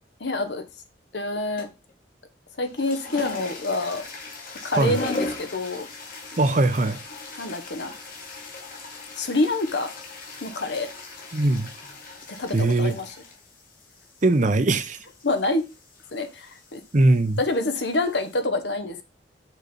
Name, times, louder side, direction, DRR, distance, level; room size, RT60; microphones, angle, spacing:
voice 1, 0.2-0.6 1.1-1.7 2.6-4.0 4.6-5.9 7.4-7.9 9.2-9.9 10.4-10.9 12.4-13.1 15.2-15.6 16.1-16.8 17.4-19.0, left 2 dB, 65° left, 1.1 m, -26 dB
sound 1, 1.6-1.9 2.6-18.4, left 2 dB, 50° left, 1.8 m, -39 dB
voice 2, 6.4-7.0 11.3-11.7 12.5-13.0 14.2-15.0 16.9-17.4, right 2 dB, 40° right, 0.7 m, -20 dB
6.2 x 4.3 x 5.2 m
head